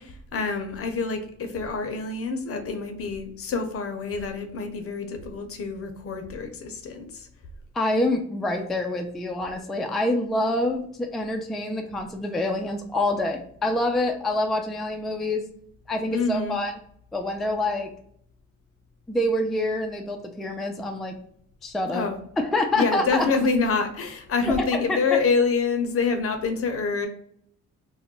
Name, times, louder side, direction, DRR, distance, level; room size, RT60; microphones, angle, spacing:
voice 1, 0.0-7.3 16.1-16.6 21.9-22.2 22.7-27.1, left 4 dB, 50° left, 6 dB, 0.6 m, -26 dB
voice 2, 7.7-15.4 15.9-16.7 17.1-17.9 19.1-21.2 21.6-22.1 22.4-23.3 24.7-25.2, left 1 dB, ahead, 2 dB, 0.3 m, -26 dB
2.3 x 2.1 x 3.7 m, 0.65 s
cardioid pair, 90°, 30 cm